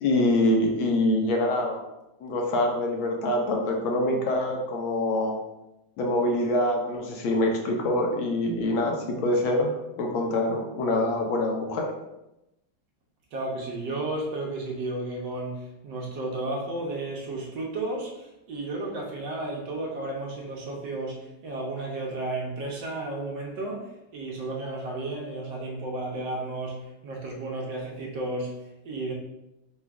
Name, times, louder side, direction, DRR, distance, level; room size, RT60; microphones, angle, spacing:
voice 1, 0.0-1.8 2.2-5.3 6.0-9.7 10.0-11.9, left 1 dB, 75° left, 1 dB, 1.4 m, -25 dB
voice 2, 13.3-29.1, right 2 dB, 65° right, -1 dB, 1.3 m, -33 dB
4.0 x 2.3 x 4.5 m, 0.91 s
omnidirectional pair, 2.3 m